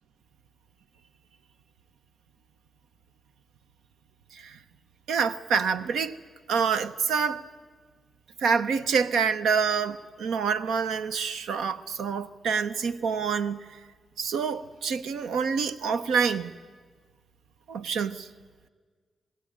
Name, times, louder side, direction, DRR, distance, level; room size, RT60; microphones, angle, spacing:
voice 1, 5.1-6.1 6.5-7.5 8.4-13.8 14.2-16.5 17.7-18.3, right 6 dB, 85° right, 0.8 m, -27 dB
26.5 x 20.0 x 8.7 m
supercardioid pair, 50°, 0 cm